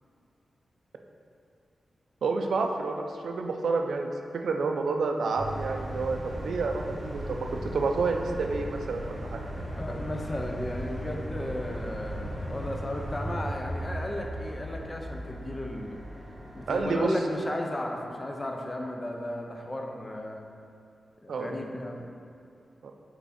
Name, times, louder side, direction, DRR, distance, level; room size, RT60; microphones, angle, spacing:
voice 1, 2.2-4.1 4.4-9.4 16.7-17.1 21.3-21.5 22.8-22.9, right 4 dB, 85° right, 3 dB, 0.5 m, -29 dB
sound 1, 5.4-16.8, equal, 15° right, 1.0 m, -37 dB
voice 2, 9.5-16.0 16.5-20.4 21.2-22.1, left 1 dB, 20° left, 1 dB, 0.6 m, -35 dB
5.8 x 4.6 x 4.2 m, 2.6 s
wide cardioid pair, 175°, 0 cm